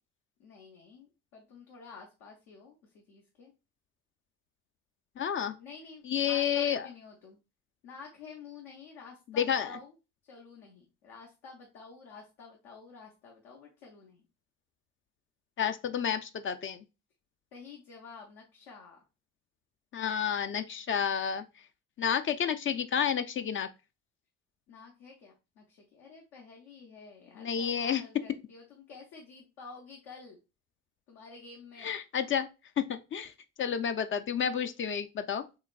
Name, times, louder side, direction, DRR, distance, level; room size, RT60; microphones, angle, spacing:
voice 1, 0.4-3.5 5.6-7.4 7.8-9.9 10.2-14.2 17.5-19.0 24.7-30.4 31.1-31.9, left 5 dB, 70° left, 0.8 m, -50 dB
voice 2, 5.2-5.6 6.1-6.9 9.4-9.7 15.6-16.8 19.9-21.4 22.0-23.7 27.4-28.0 31.8-32.5 32.8-33.3 33.6-35.4, left 8 dB, 35° left, 0.4 m, -30 dB
3.9 x 3.1 x 2.4 m
hypercardioid pair, 45°, 37 cm